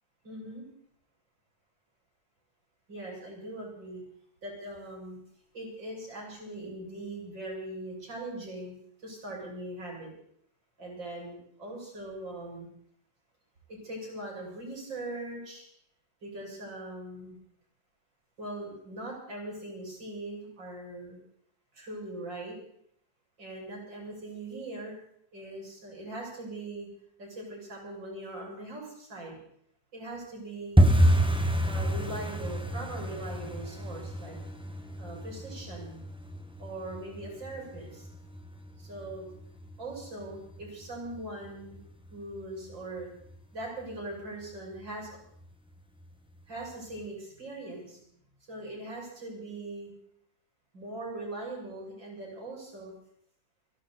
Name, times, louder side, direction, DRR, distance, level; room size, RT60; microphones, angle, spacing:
voice 1, 0.2-0.7 2.9-4.0 4.4-5.2 5.5-8.7 9.0-10.1 10.8-12.7 13.7-15.6 16.2-17.4 18.4-21.2 21.7-22.6 23.4-25.0 25.3-26.9 27.2-29.4 29.9-30.8 31.6-34.4 35.0-36.0 36.6-38.1 38.8-39.3 39.8-41.8 42.1-43.1 43.5-45.2 46.5-48.0 48.4-49.9 50.7-52.9, right 2 dB, 65° right, -2 dB, 6.8 m, -40 dB
sound 1, 30.8-41.5 41.7-42.4 42.7-43.0 43.2-43.6 43.9-44.0 44.5-45.1 45.4-45.5 46.0-46.1, equal, 5° right, 0.6 m, -29 dB
27.5 x 11.5 x 4.1 m, 0.68 s
omnidirectional pair, 2.2 m